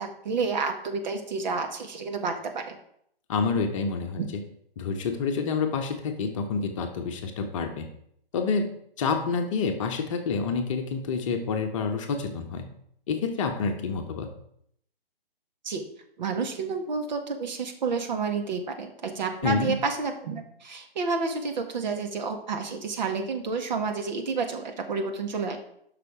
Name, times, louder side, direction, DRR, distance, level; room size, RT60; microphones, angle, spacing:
voice 1, 0.0-2.8 4.2-4.3 15.6-15.8 16.2-25.6, right 4 dB, 45° right, 4 dB, 1.9 m, -30 dB
voice 2, 3.3-4.2 4.8-7.9 8.3-8.7 9.0-12.6 13.1-14.3 19.4-19.8, left 5 dB, 30° left, 4 dB, 1.2 m, -28 dB
12.0 x 6.0 x 5.0 m, 0.70 s
figure-of-eight pair, 140°, 30 cm